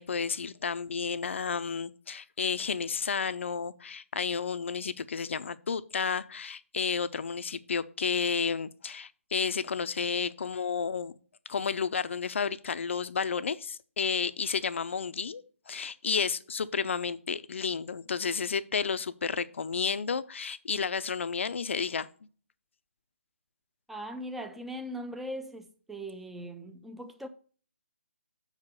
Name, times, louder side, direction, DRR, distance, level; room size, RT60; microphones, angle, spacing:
voice 1, 0.0-11.1 11.5-22.1, left 6 dB, 60° left, 0.6 m, -31 dB
voice 2, 23.9-27.3, equal, 5° right, 0.5 m, -40 dB
6.5 x 4.9 x 6.6 m
figure-of-eight pair, 145°, 7 cm